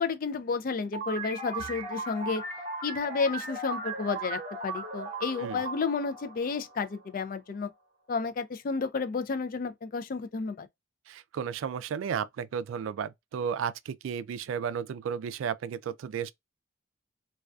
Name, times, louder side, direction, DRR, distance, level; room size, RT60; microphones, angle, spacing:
voice 1, 0.0-2.4 2.8-7.7 8.1-10.7, left 4 dB, 45° left, 0.3 m, -31 dB
sound 1, 0.9-7.2, right 3 dB, 35° right, 0.8 m, -37 dB
voice 2, 11.1-16.3, right 7 dB, 85° right, 0.3 m, -33 dB
2.3 x 2.2 x 2.3 m
head